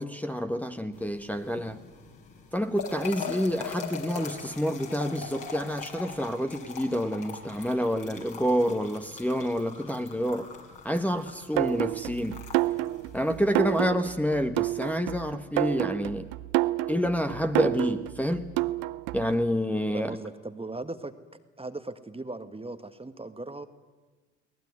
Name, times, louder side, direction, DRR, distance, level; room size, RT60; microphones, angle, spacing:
voice 1, 0.0-1.8 2.5-10.5 10.8-12.4 13.1-16.3 16.9-18.5 19.1-20.1, equal, 5° left, 1.4 m, -28 dB
sound 1, 0.9-13.9, left 6 dB, 50° left, 4.7 m, -42 dB
sound 2, 11.6-19.4, right 19 dB, 70° right, 0.8 m, -29 dB
voice 2, 19.9-21.1 21.6-23.7, right 2 dB, 15° right, 1.5 m, -38 dB
22.5 x 19.0 x 9.6 m
hypercardioid pair, 55°, 40 cm